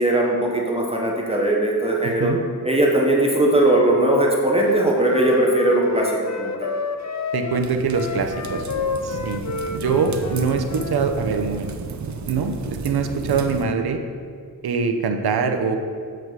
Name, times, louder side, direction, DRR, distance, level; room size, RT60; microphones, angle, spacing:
voice 1, 0.0-2.3 2.6-6.7, right 1 dB, 15° right, -2 dB, 0.8 m, -19 dB
voice 2, 2.0-2.4 7.3-8.6 9.0-9.4 9.7-11.7 12.3-14.0 14.6-15.8, right 5 dB, 85° right, 6 dB, 0.8 m, -23 dB
Wind instrument woodwind instrument, 4.7-11.1, left 4 dB, 50° left, 0.6 m, -30 dB
sound 1, 7.5-13.6, right 5 dB, 50° right, 0.6 m, -33 dB
7.9 x 4.7 x 6.5 m, 2.1 s
wide cardioid pair, 160°, 37 cm